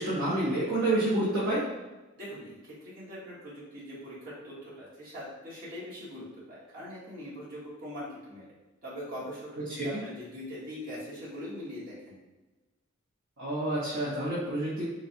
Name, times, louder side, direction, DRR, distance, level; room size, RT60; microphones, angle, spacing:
voice 1, 0.0-1.7 9.8-10.0 13.4-14.9, right 1 dB, 65° right, -10 dB, 1.0 m, -28 dB
voice 2, 2.2-8.5 8.8-12.2, equal, 45° right, -10 dB, 1.5 m, -42 dB
3.9 x 3.1 x 2.6 m, 1.1 s
head